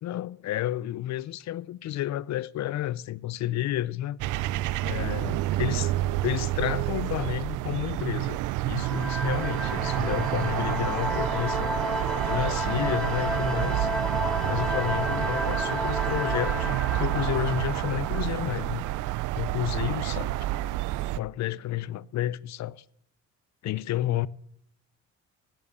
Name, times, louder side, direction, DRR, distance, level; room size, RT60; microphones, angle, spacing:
voice 1, 0.0-4.2 4.8-5.9 6.2-8.4 8.7-11.7 12.2-13.9 14.5-18.9 19.4-20.3 21.2-22.8 23.6-24.3, left 13 dB, 65° left, 0.5 m, -31 dB
sound 1, 4.2-21.2, right 16 dB, 85° right, 0.5 m, -29 dB
sound 2, 8.7-19.1, left 1 dB, ahead, 0.7 m, -32 dB
10.5 x 9.6 x 6.5 m
cardioid pair, 90°, 30 cm